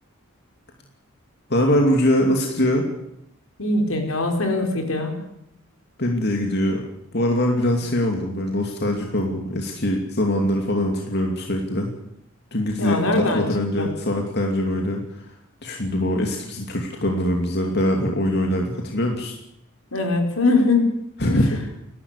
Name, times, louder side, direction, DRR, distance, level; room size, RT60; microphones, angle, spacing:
voice 1, 1.5-2.8 6.0-6.8 7.1-11.9 12.5-15.3 15.6-19.4 21.2-21.6, left 1 dB, 50° left, 1 dB, 2.7 m, -22 dB
voice 2, 3.6-5.2 12.8-13.4 13.8-13.9 19.9-20.9 21.2-21.4, left 2 dB, 80° left, 3 dB, 4.7 m, -21 dB
29.0 x 12.0 x 8.3 m, 0.80 s
head